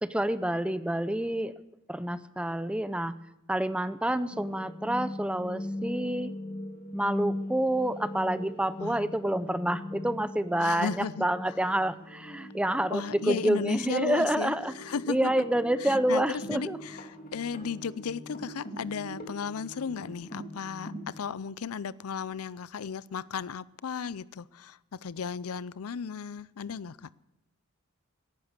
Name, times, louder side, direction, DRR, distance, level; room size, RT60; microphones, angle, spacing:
voice 1, 0.0-1.5 1.9-3.1 3.5-6.3 6.9-14.7 15.1-16.8, right 1 dB, 5° right, 0.5 m, -28 dB
sound 1, 4.3-21.1, left 1 dB, 45° left, 2.5 m, -41 dB
voice 2, 10.6-11.3 12.9-15.3 15.8-27.1, left 6 dB, 90° left, 0.5 m, -35 dB
17.5 x 11.0 x 6.7 m
head